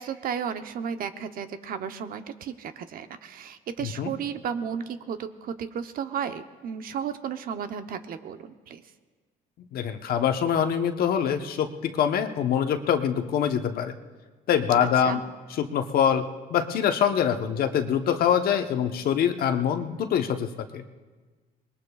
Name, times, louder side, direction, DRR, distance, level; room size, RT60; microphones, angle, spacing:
voice 1, 0.0-8.8 15.0-15.2, right 7 dB, 60° right, 9 dB, 0.9 m, -34 dB
voice 2, 3.8-4.1 9.6-13.9 14.5-15.2 15.6-20.8, left 8 dB, 65° left, 6 dB, 1.0 m, -24 dB
25.5 x 21.0 x 2.4 m, 1.4 s
cardioid pair, 110°, 17 cm